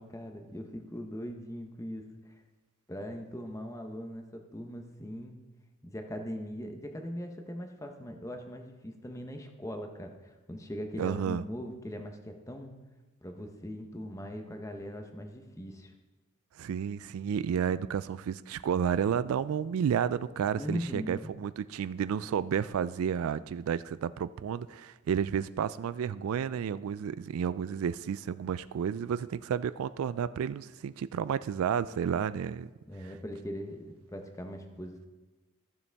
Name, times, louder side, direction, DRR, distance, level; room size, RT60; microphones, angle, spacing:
voice 1, 0.0-2.4 2.9-5.4 5.8-12.8 13.2-15.9 20.5-21.3 32.9-35.1, equal, 15° left, 4 dB, 0.8 m, -40 dB
voice 2, 11.0-11.4 16.6-32.7, right 8 dB, 80° right, 16 dB, 0.3 m, -31 dB
14.5 x 7.0 x 3.4 m, 1.2 s
head